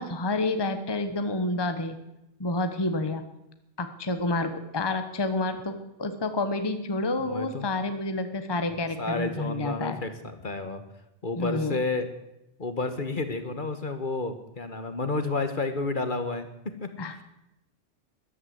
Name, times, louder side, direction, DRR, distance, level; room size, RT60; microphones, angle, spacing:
voice 1, 0.0-2.0 2.4-3.2 3.8-10.0 11.4-11.8 17.0-17.2, left 2 dB, 20° left, 9 dB, 1.1 m, -29 dB
voice 2, 7.2-7.7 9.0-10.8 11.2-12.1 12.6-17.2, left 3 dB, 45° left, 9 dB, 1.4 m, -31 dB
14.0 x 11.5 x 7.9 m, 0.89 s
omnidirectional pair, 1.2 m